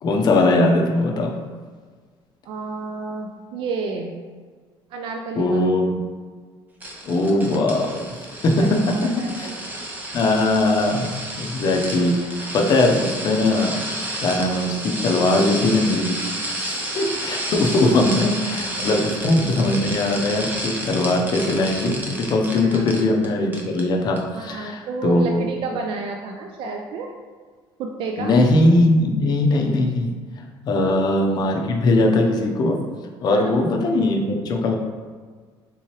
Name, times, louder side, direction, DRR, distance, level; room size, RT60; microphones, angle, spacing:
voice 1, 0.0-1.3 5.4-6.0 7.0-8.0 8.4-8.8 9.4-9.5 10.1-16.2 16.6-22.0 22.3-25.5 28.2-30.1 30.6-32.8 33.2-34.8, left 2 dB, 45° left, 1 dB, 0.5 m, -20 dB
voice 2, 2.4-4.1 4.9-5.7 8.6-9.7 22.6-22.9 24.3-27.1 27.8-28.4 30.8-31.0 33.3-33.6, right 4 dB, 60° right, 2 dB, 0.3 m, -30 dB
sound 1, 6.8-23.3 23.5-23.8 24.2-24.3, right 1 dB, 20° right, 0.6 m, -31 dB
3.4 x 2.9 x 3.1 m, 1.5 s
cardioid pair, 125°, 10 cm